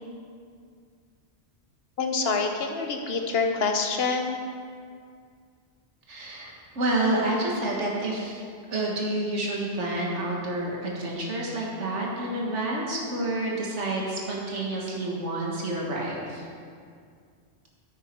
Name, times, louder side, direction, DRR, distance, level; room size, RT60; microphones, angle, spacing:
voice 1, 2.0-4.4, left 4 dB, 60° left, 3 dB, 1.2 m, -26 dB
voice 2, 6.1-8.4 8.7-16.5, right 1 dB, 90° right, -3 dB, 1.9 m, -29 dB
9.7 x 9.4 x 4.5 m, 2.2 s
omnidirectional pair, 1.2 m